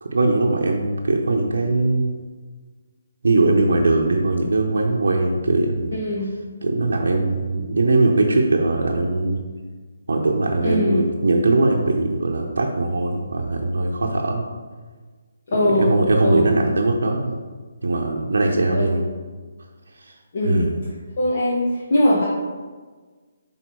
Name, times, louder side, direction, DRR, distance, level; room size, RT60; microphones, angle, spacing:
voice 1, 0.0-2.1 3.2-5.9 6.6-9.4 10.1-14.5 15.6-17.4 17.8-19.0 20.0-20.2 20.4-20.8, right 2 dB, 80° right, 0 dB, 0.7 m, -20 dB
voice 2, 5.9-6.3 10.6-11.0 15.5-15.9 16.2-16.5 18.6-19.0 20.3-20.7 21.2-22.2, left 1 dB, 50° left, -7 dB, 1.4 m, -21 dB
6.2 x 3.6 x 4.4 m, 1.4 s
hypercardioid pair, 165°, 0 cm